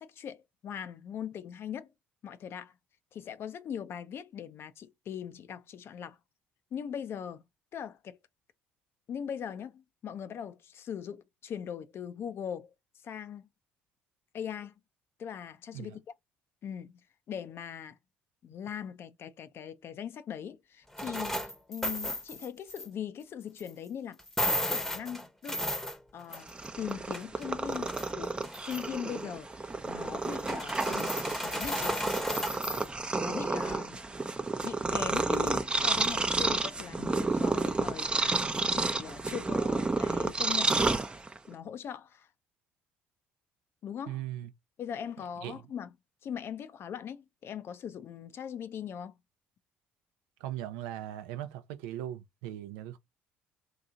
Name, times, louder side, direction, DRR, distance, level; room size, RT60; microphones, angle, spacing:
voice 1, 0.0-1.9 2.2-2.7 3.1-6.2 6.7-7.4 7.7-8.2 9.1-12.7 13.0-13.5 14.3-14.8 15.2-16.0 16.6-16.9 17.3-18.0 18.4-24.2 24.5-25.7 26.1-28.4 28.6-31.1 31.4-32.1 33.2-34.0 34.6-41.0 41.5-42.3 43.8-44.2 44.8-45.9 46.2-49.1, left 8 dB, 55° left, 0.6 m, -40 dB
sound 1, 20.9-22.9 23.6-23.7 24.2-26.6 26.9-28.1 28.4-29.0 30.3-32.9, left 1 dB, 5° left, 0.9 m, -34 dB
Purr, 26.4-41.5, right 3 dB, 20° right, 0.6 m, -31 dB
voice 2, 44.1-44.5 45.4-45.6 50.4-53.0, right 12 dB, 80° right, 0.5 m, -39 dB
2.9 x 2.6 x 3.7 m
hypercardioid pair, 60°, 5 cm